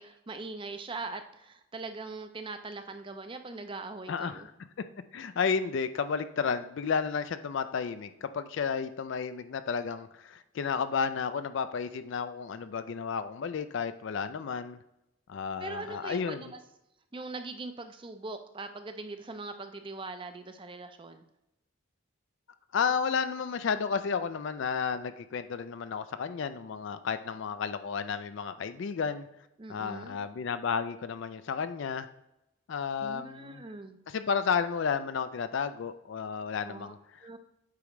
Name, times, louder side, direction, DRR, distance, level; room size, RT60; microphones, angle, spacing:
voice 1, 0.0-4.5 15.6-16.6 17.1-21.2 29.6-30.2 33.0-34.0 36.6-36.9 37.2-37.4, right 3 dB, 25° right, 8 dB, 0.5 m, -41 dB
voice 2, 4.1-4.5 5.1-14.8 15.3-16.5 22.7-29.3 29.7-32.1 32.7-33.6 34.1-37.4, left 6 dB, 55° left, 11 dB, 0.3 m, -32 dB
8.4 x 4.8 x 3.1 m, 0.86 s
head